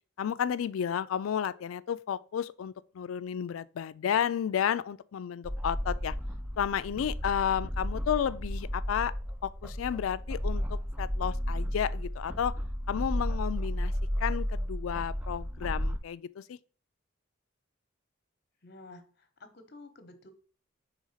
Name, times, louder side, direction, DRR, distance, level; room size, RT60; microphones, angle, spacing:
voice 1, 0.2-6.1 6.6-9.1 9.4-12.5 12.9-13.9 14.2-16.6, left 8 dB, 90° left, 0.3 m, -32 dB
sound 1, 5.4-16.0, equal, 5° right, 0.4 m, -33 dB
voice 2, 18.6-20.3, left 2 dB, 50° left, 0.9 m, -51 dB
4.9 x 3.4 x 5.6 m
head